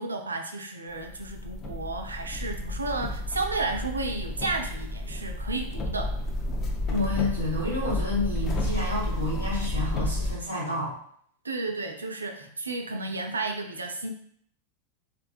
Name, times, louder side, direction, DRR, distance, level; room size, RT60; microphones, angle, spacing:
voice 1, 0.0-6.1 11.4-14.1, right 3 dB, 75° right, 4 dB, 0.3 m, -32 dB
sound 1, 1.0-10.3, left 1 dB, 30° left, 0.4 m, -31 dB
voice 2, 6.9-10.9, left 2 dB, 90° left, -6 dB, 1.0 m, -30 dB
2.4 x 2.2 x 2.3 m, 0.64 s
figure-of-eight pair, 90°, 0 cm